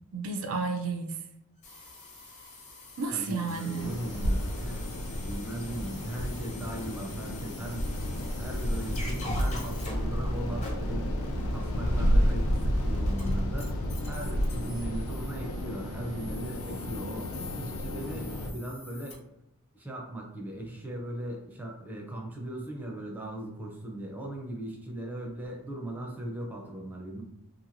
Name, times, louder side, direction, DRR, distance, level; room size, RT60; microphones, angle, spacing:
voice 1, 0.1-1.2 3.0-3.9, right 4 dB, 65° right, 4 dB, 0.4 m, -32 dB
sound 1, 1.6-19.1, equal, 30° left, 0.8 m, -40 dB
voice 2, 3.1-7.9 8.4-11.2 11.5-13.7 14.1-19.2 19.7-27.2, right 1 dB, 10° right, -1 dB, 0.5 m, -38 dB
sound 2, 3.8-18.5, equal, 75° left, 0.5 m, -31 dB
2.9 x 2.6 x 2.5 m, 0.81 s
head